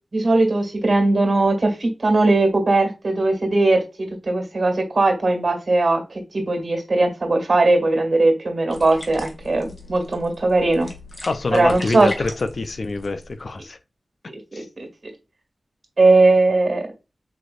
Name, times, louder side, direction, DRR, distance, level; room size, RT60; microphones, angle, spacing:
voice 1, 0.1-10.9 11.5-12.1 14.5-14.9 16.0-16.9, right 2 dB, 65° right, 1.9 m, -19 dB
sound 1, 8.7-13.7, left 2 dB, 45° left, 1.7 m, -38 dB
voice 2, 11.3-13.8 14.5-14.7, left 3 dB, 65° left, 0.5 m, -25 dB
5.9 x 3.2 x 2.5 m
wide cardioid pair, 55°, 0 cm